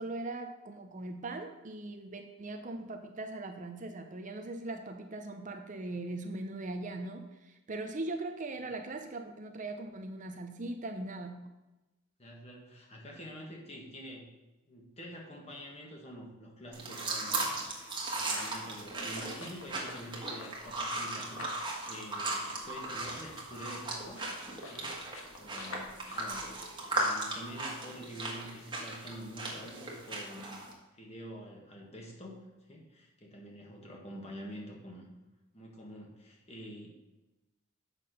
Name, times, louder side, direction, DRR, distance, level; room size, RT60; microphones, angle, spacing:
voice 1, 0.0-11.4, right 2 dB, 40° right, 6 dB, 0.6 m, -40 dB
voice 2, 12.2-14.3 14.7-24.3 24.7-25.0 25.3-30.6 30.9-35.1 35.5-36.9, equal, 30° left, -1 dB, 1.7 m, -47 dB
sound 1, 16.7-30.7, right 2 dB, 25° right, 1.5 m, -37 dB
sound 2, 17.5-21.7 21.9-27.3, left 2 dB, 75° left, 1.4 m, -49 dB
7.4 x 6.0 x 5.3 m, 1.0 s
head